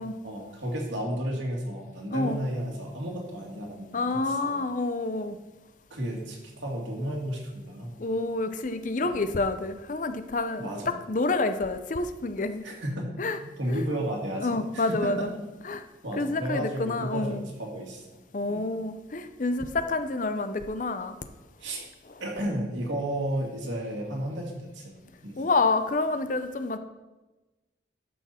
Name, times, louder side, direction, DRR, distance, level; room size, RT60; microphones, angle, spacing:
voice 1, 0.2-4.6 5.9-7.9 9.1-9.2 10.6-10.9 12.6-13.2 13.6-15.3 16.0-18.7 21.6-21.8 22.2-24.9 25.2-25.4, right 1 dB, 80° right, -1 dB, 2.4 m, -33 dB
voice 2, 3.9-5.4 8.0-10.8 11.1-12.6 13.2-13.4 13.7-13.9 14.4-15.3 15.6-15.8 16.1-17.4 18.3-21.2 22.1-22.2 25.4-26.8, left 3 dB, 45° left, 10 dB, 0.5 m, -28 dB
12.5 x 6.0 x 4.3 m, 1.1 s
head